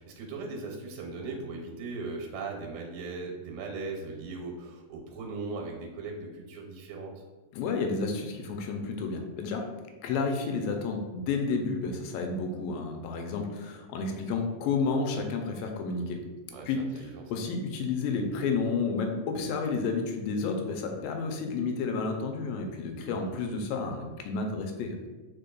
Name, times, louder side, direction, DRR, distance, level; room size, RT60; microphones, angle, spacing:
voice 1, 0.0-7.1 16.5-17.2 23.1-23.3, right 3 dB, 90° right, 1 dB, 2.5 m, -38 dB
voice 2, 7.5-9.7 10.0-16.2 16.7-16.9 17.3-25.0, left 4 dB, 85° left, 3 dB, 2.3 m, -31 dB
5.2 x 4.0 x 2.3 m, 1.3 s
omnidirectional pair, 4.0 m